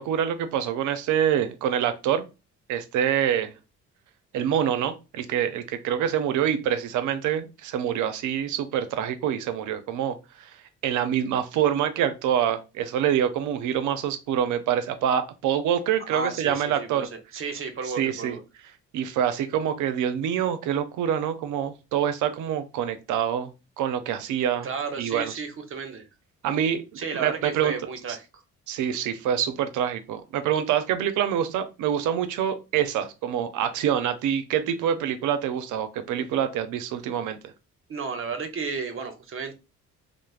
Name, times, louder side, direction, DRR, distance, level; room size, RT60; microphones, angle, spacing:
voice 1, 0.0-2.2 2.7-3.5 4.3-10.6 10.8-17.1 18.0-18.4 18.9-23.5 23.8-24.7 25.0-25.3 26.4-27.7 28.7-37.4, right 9 dB, 80° right, 0.5 m, -26 dB
voice 2, 16.1-18.4 24.6-26.1 27.0-28.4 37.9-39.5, right 4 dB, 45° right, 0.7 m, -33 dB
3.2 x 2.0 x 2.3 m
cardioid pair, 90°, 30 cm